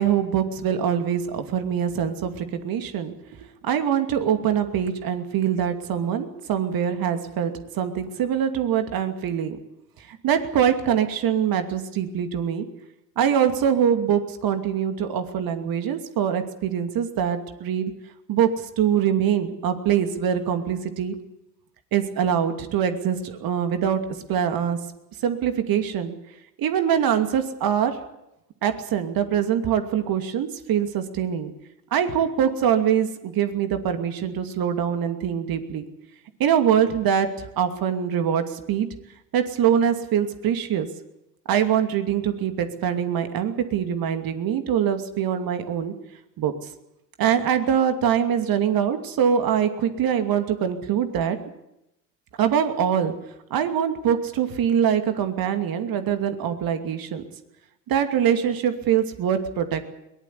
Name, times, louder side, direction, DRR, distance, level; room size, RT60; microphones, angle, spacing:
voice 1, 0.0-3.1 3.6-9.6 10.1-12.7 13.2-17.9 18.3-21.1 21.9-24.0 24.3-24.8 25.2-26.1 26.6-28.0 28.6-31.5 31.9-35.8 36.4-38.9 39.3-40.9 41.5-45.9 46.4-46.5 47.2-51.4 52.4-53.1 53.5-57.2 57.9-59.9, right 8 dB, 45° right, 7 dB, 2.7 m, -23 dB
22.0 x 19.0 x 8.4 m, 0.85 s
hypercardioid pair, 75°, 49 cm